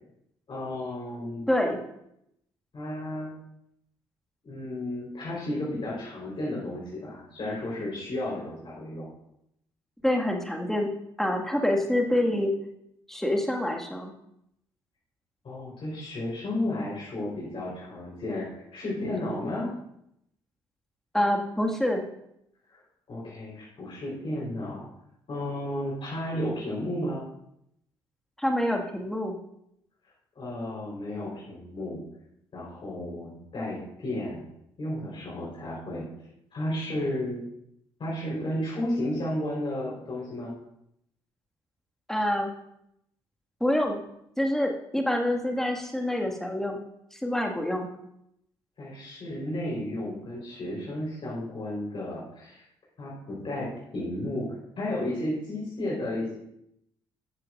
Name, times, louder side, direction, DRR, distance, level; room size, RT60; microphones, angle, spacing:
voice 1, 0.5-1.5 2.7-3.4 4.4-9.1 15.4-19.7 22.7-22.8 23.1-24.9 25.3-27.3 30.4-32.0 32.5-34.4 34.8-36.1 36.5-37.4 38.0-40.5 48.8-52.7 53.0-56.4, left 1 dB, 40° left, -5 dB, 4.0 m, -33 dB
voice 2, 1.5-1.8 10.0-10.9 11.2-12.5 13.1-14.1 21.1-22.0 28.4-29.4 42.1-42.5 43.6-44.0 44.4-46.8 47.1-47.9, left 1 dB, 5° left, 1 dB, 1.8 m, -26 dB
13.5 x 11.0 x 2.5 m, 0.77 s
figure-of-eight pair, 45°, 13 cm